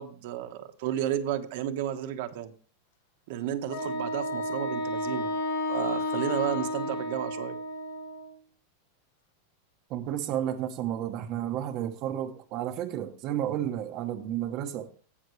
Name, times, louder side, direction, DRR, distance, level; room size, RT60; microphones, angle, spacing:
voice 1, 0.0-2.5 3.3-5.3 5.7-7.6, right 11 dB, 60° right, 7 dB, 1.2 m, -32 dB
Wind instrument woodwind instrument, 3.7-8.3, left 1 dB, 80° left, 5.2 m, -32 dB
voice 2, 9.9-14.9, right 11 dB, 40° right, 5 dB, 1.0 m, -32 dB
17.5 x 5.9 x 3.2 m, 0.41 s
supercardioid pair, 155°, 0 cm